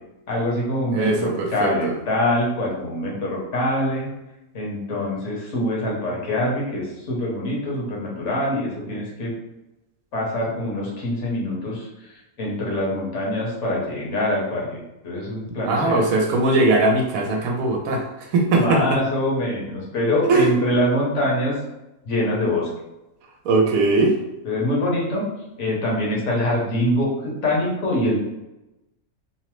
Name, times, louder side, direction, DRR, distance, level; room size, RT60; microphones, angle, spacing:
voice 1, 0.3-4.1 4.5-9.3 10.1-16.0 18.6-21.6 22.0-22.7 24.4-25.3 25.6-28.3, left 1 dB, 60° left, -3 dB, 1.1 m, -24 dB
voice 2, 0.9-1.9 15.6-19.0 20.3-20.5 23.4-24.2, right 2 dB, 80° right, 1 dB, 1.0 m, -20 dB
3.1 x 2.0 x 3.0 m, 0.94 s
omnidirectional pair, 1.5 m